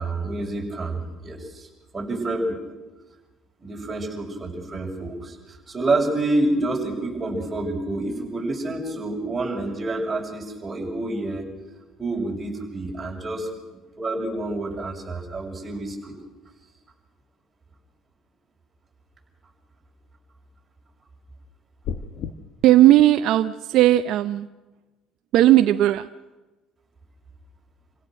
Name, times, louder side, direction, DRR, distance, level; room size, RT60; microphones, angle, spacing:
voice 1, 0.0-1.7 1.9-2.6 3.6-11.4 12.0-13.5 14.0-16.1, right 2 dB, 20° right, -2 dB, 6.8 m, -28 dB
sound 1, 21.8-22.3, left 7 dB, 65° left, 1.4 m, -31 dB
voice 2, 22.6-24.5 25.3-26.1, right 14 dB, 65° right, 7 dB, 0.7 m, -16 dB
27.5 x 17.0 x 6.4 m, 1.1 s
cardioid pair, 110°, 0 cm